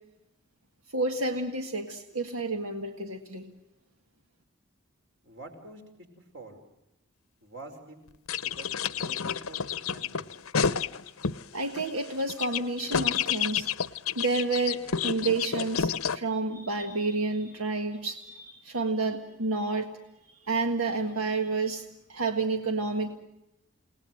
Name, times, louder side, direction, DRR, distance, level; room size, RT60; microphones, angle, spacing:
voice 1, 0.9-3.5 11.5-13.7 14.2-19.9 20.5-21.8 22.1-23.2, right 3 dB, 90° right, 5 dB, 1.7 m, -30 dB
voice 2, 5.2-5.8 6.2-6.6 7.4-8.0 8.4-10.3, right 2 dB, 55° right, 4 dB, 4.9 m, -47 dB
sound 1, 8.3-11.4 11.8-16.2, left 7 dB, 90° left, 0.8 m, -30 dB
29.5 x 19.0 x 7.8 m, 0.94 s
head